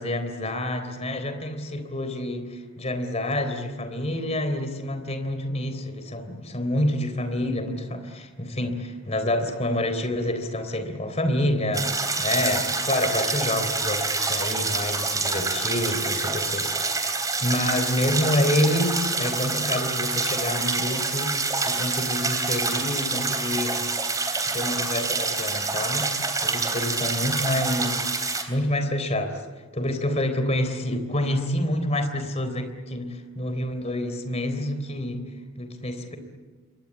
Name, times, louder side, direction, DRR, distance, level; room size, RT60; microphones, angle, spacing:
voice 1, 0.0-17.0 17.4-21.4 21.6-23.8 24.5-26.1 26.4-28.1 28.5-29.4 29.7-35.3 35.6-36.2, left 1 dB, 30° left, 8 dB, 3.6 m, -27 dB
sound 1, 11.7-28.4, right 3 dB, 15° right, 3.3 m, -27 dB
28.0 x 23.5 x 8.4 m, 1.3 s
head